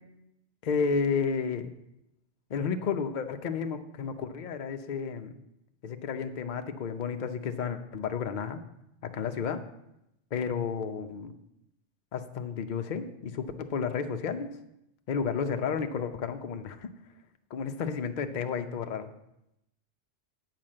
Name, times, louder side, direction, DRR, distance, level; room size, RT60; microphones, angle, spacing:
voice 1, 0.6-1.7 2.5-5.3 5.8-8.6 9.0-9.6 10.3-11.4 12.1-14.6 15.1-16.9 17.5-19.1, left 6 dB, 45° left, 7 dB, 0.7 m, -32 dB
9.1 x 4.9 x 7.6 m, 0.84 s
omnidirectional pair, 1.3 m